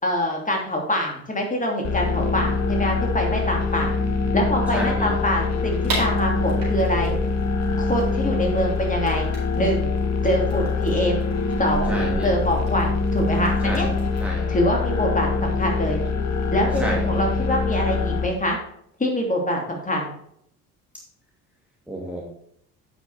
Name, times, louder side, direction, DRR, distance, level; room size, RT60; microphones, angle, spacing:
voice 1, 0.0-3.9 4.3-7.2 7.8-9.3 9.5-9.9 10.2-11.2 11.6-11.9 12.2-13.9 14.5-16.0 16.5-18.6 19.0-20.1, equal, 15° left, 0 dB, 2.9 m, -24 dB
sound 1, 1.8-18.3, left 4 dB, 35° left, 1.3 m, -24 dB
voice 2, 4.7-5.1 11.9-12.3 13.6-14.5 16.8-17.0 21.9-22.2, right 1 dB, 5° right, -3 dB, 2.3 m, -29 dB
sound 2, 5.8-14.2, right 2 dB, 65° right, 4.1 m, -36 dB
10.0 x 5.9 x 4.2 m, 0.70 s
hypercardioid pair, 60°, 45 cm